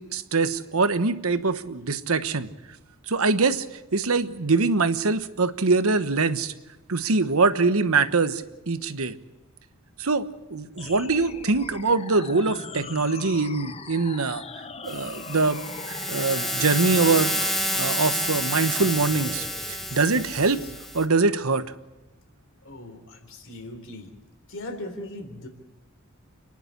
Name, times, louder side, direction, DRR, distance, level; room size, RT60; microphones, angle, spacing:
voice 1, 0.0-2.5 3.1-3.7 3.9-6.5 6.9-9.1 10.0-14.4 14.8-15.6 15.9-17.3 17.7-20.6 20.9-21.6, right 3 dB, 75° right, 12 dB, 1.2 m, -23 dB
sound 1, 10.8-20.8, left 4 dB, 30° left, 0.7 m, -41 dB
sound 2, 14.9-21.1, equal, ahead, 1.7 m, -29 dB
voice 2, 22.6-24.1 24.5-25.5, left 1 dB, 65° left, 7 dB, 3.5 m, -39 dB
29.0 x 11.0 x 9.7 m, 1.1 s
head